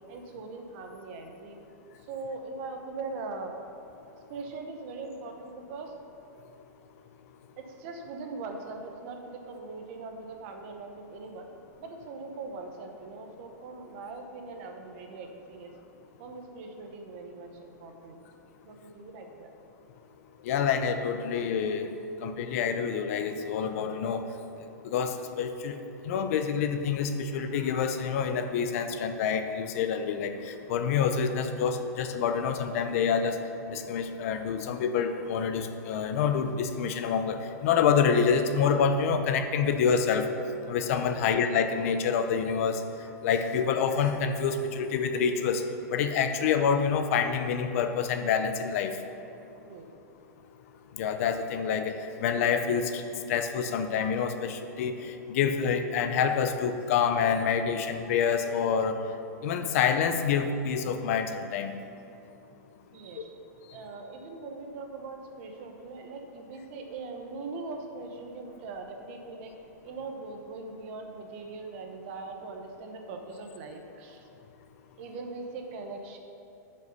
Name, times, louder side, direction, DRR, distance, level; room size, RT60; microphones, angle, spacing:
voice 1, 0.1-1.6 2.1-3.6 4.3-5.9 7.6-11.5 11.8-15.7 16.2-18.2 18.6-19.5 41.1-41.3 49.7-49.9 62.9-63.4 63.7-69.5 69.8-74.2 75.0-76.2, right 3 dB, 45° right, 4 dB, 1.0 m, -41 dB
voice 2, 20.4-21.9 22.2-24.2 24.8-25.8 26.0-33.4 33.7-40.3 40.7-42.8 43.2-45.6 45.9-49.0 51.0-51.9 52.2-53.0 53.3-59.0 59.4-61.7, left 6 dB, 50° left, 8 dB, 0.6 m, -27 dB
9.3 x 5.5 x 5.5 m, 2.7 s
supercardioid pair, 155°, 10 cm